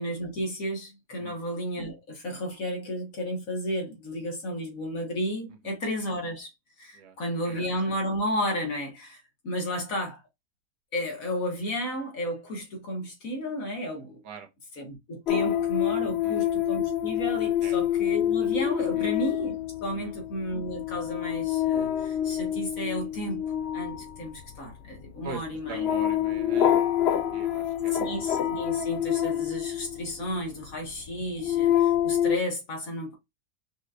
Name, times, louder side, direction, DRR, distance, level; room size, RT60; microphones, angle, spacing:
voice 1, 0.0-6.5 6.8-10.2 10.9-14.2 14.8-19.6 19.8-23.4 23.7-25.8 28.0-33.1, equal, 55° left, 2.0 m, -33 dB
sound 1, 15.3-30.4 31.0-32.4, left 11 dB, 85° left, 0.5 m, -27 dB
voice 2, 16.0-16.4 17.6-17.8 18.9-19.1 19.9-20.1 25.2-25.4 25.7-27.1 27.3-28.0, right 5 dB, 80° right, 1.4 m, -42 dB
5.4 x 3.1 x 2.5 m
omnidirectional pair, 1.7 m